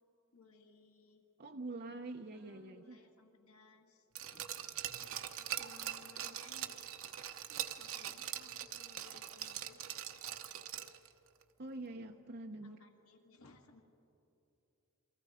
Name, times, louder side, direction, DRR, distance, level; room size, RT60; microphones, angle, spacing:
voice 1, 0.3-1.3 2.3-4.5 5.0-6.9 7.8-9.8 12.6-13.8, left 4 dB, 85° left, 3 dB, 1.9 m, -62 dB
voice 2, 1.4-3.0 11.6-12.8, right 2 dB, 50° right, 4 dB, 0.8 m, -45 dB
Glass, 4.2-11.1 11.4-11.5, right 11 dB, 70° right, 1.0 m, -43 dB
29.0 x 24.0 x 5.0 m, 2.8 s
head